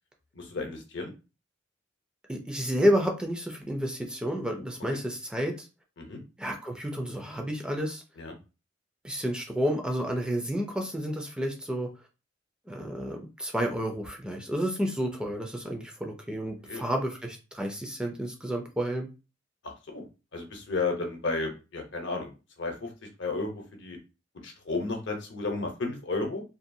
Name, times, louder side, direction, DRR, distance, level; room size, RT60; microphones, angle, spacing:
voice 1, 0.3-1.1 6.0-6.2 8.2-8.4 16.6-16.8 19.6-20.0 20.3-22.3 22.6-22.9 23.2-24.0 24.4-26.4, left 3 dB, 65° left, 3 dB, 0.7 m, -33 dB
voice 2, 2.3-5.7 6.4-8.0 9.0-11.9 12.7-19.1, equal, 5° right, 2 dB, 0.4 m, -30 dB
2.6 x 2.3 x 2.6 m, 0.31 s
head